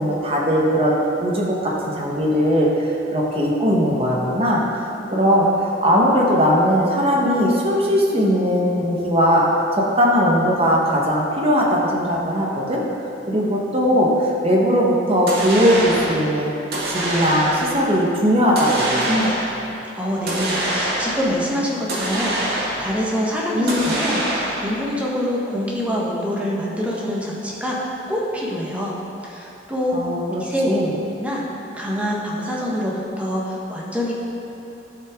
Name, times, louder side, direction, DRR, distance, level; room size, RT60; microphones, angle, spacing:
voice 1, 0.0-9.4 9.8-12.8 13.3-16.5 16.9-19.3 23.5-23.8 29.9-30.9, equal, 35° right, -3 dB, 1.3 m, -19 dB
sound 1, 15.3-16.2 16.7-17.8 18.6-19.6 20.3-21.3 21.9-23.0 23.7-24.8, right 1 dB, 60° right, 2.1 m, -25 dB
voice 2, 19.9-28.9 29.2-30.0 30.4-30.8 31.2-31.4 31.7-34.1, equal, 10° right, -5 dB, 1.3 m, -25 dB
12.0 x 6.0 x 3.7 m, 2.8 s
head